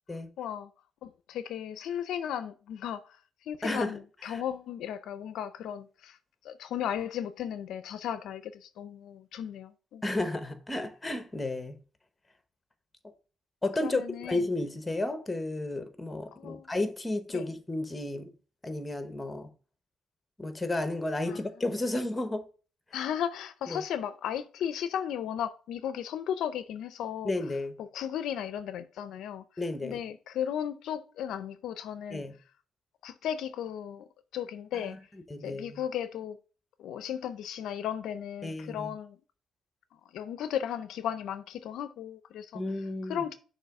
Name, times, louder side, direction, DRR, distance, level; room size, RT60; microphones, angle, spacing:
voice 1, 0.4-0.7 1.0-3.0 3.5-6.2 6.4-10.0 13.8-14.5 16.3-16.7 17.3-17.5 21.3-21.4 22.9-27.3 27.8-29.4 29.8-32.2 33.0-35.0 35.4-36.4 36.8-39.2 40.1-42.6 43.0-43.3, left 9 dB, 80° left, 0.5 m, -35 dB
voice 2, 3.6-3.9 4.3-4.4 10.0-11.8 13.6-18.3 18.6-19.5 20.4-22.4 23.7-23.8 27.2-27.8 29.6-30.0 32.1-32.3 34.8-35.0 35.3-35.8 38.4-38.9 42.5-43.2, left 2 dB, 15° left, 1.0 m, -32 dB
6.6 x 3.0 x 5.8 m
cardioid pair, 90°, 0 cm